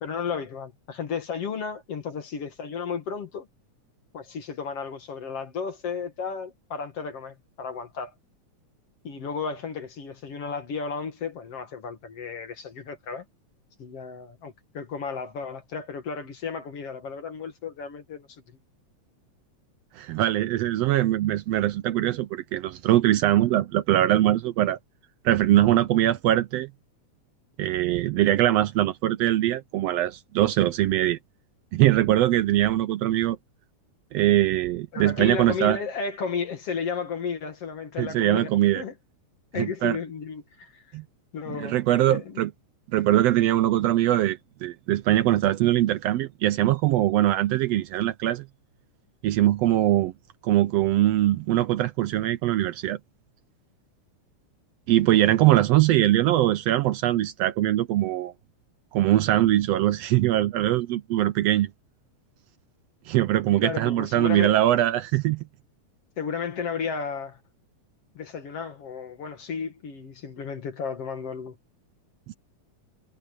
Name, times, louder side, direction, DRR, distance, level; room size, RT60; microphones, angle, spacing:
voice 1, 0.0-3.5 4.1-8.1 9.0-13.3 13.8-18.4 34.9-38.9 39.5-40.8 41.3-41.8 42.1-42.4 63.6-64.6 66.2-67.4 68.1-71.6, left 6 dB, 55° left, 2.7 m, -33 dB
voice 2, 20.0-24.8 25.2-26.7 27.6-31.2 31.7-33.4 34.1-35.8 38.0-38.8 39.6-40.0 40.9-41.0 41.6-42.5 42.9-48.4 49.2-50.1 50.4-53.0 54.9-58.3 58.9-61.7 63.1-65.4 72.3-72.4, right 14 dB, 80° right, 1.4 m, -22 dB
omnidirectional pair, 3.5 m